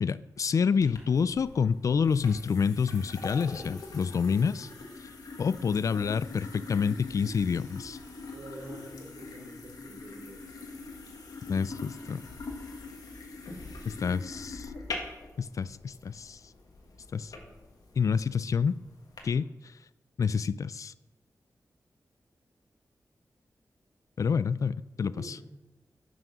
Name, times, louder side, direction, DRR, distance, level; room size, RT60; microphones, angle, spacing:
voice 1, 0.0-4.7 5.4-8.0 11.5-12.2 13.9-14.7 15.4-16.4 17.1-17.3 18.0-18.7 19.2-19.5 20.2-20.9 24.2-25.4, left 6 dB, 55° left, 17 dB, 0.3 m, -28 dB
sound 1, 0.8-19.2, left 3 dB, 75° left, 1.7 m, -43 dB
voice 2, 8.3-10.5 25.1-25.4, right 1 dB, 85° right, -1 dB, 2.7 m, -46 dB
11.0 x 6.3 x 6.1 m, 1.0 s
wide cardioid pair, 165°, 6 cm